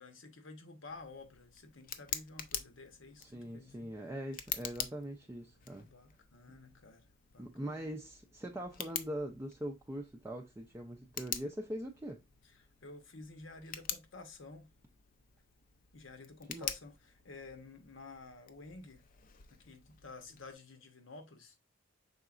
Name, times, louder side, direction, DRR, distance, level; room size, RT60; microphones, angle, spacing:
voice 1, 0.0-3.9 5.8-7.0 7.3-7.9 12.5-14.7 15.9-19.0 19.5-21.5, left 3 dB, 80° left, 1.0 m, -52 dB
Tick, 0.9-20.5, left 9 dB, 45° left, 0.5 m, -46 dB
voice 2, 3.2-5.9 7.4-12.2 16.5-16.7, equal, 15° right, 0.4 m, -42 dB
5.5 x 3.9 x 2.4 m
head